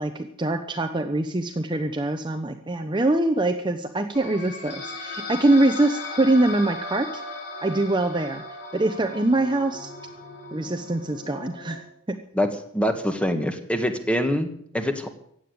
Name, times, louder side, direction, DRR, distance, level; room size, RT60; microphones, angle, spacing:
voice 1, 0.0-7.1 7.6-8.4 8.7-9.9 10.5-11.8 12.1-12.2, right 2 dB, 20° right, 6 dB, 0.9 m, -23 dB
sound 1, 4.1-11.8, left 2 dB, 55° left, 4.8 m, -37 dB
voice 2, 12.7-14.5 14.7-15.1, equal, 5° left, 7 dB, 1.6 m, -24 dB
16.0 x 8.9 x 9.5 m, 0.69 s
head